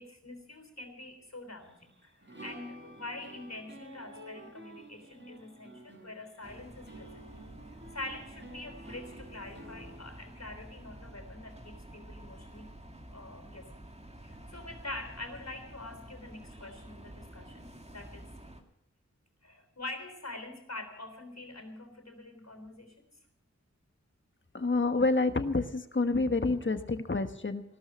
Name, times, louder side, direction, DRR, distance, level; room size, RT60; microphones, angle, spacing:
voice 1, 0.0-7.2 7.7-12.8 13.1-13.7 14.2-18.3 19.4-23.1, left 2 dB, 60° left, 6 dB, 3.6 m, -45 dB
sound 1, 1.6-10.0, right 1 dB, 40° right, 6.4 m, -50 dB
sound 2, 6.4-18.6, right 1 dB, 20° right, 2.1 m, -50 dB
voice 2, 24.5-27.6, left 3 dB, 40° left, 9 dB, 1.3 m, -28 dB
17.5 x 13.0 x 6.3 m, 0.78 s
wide cardioid pair, 50°, 29 cm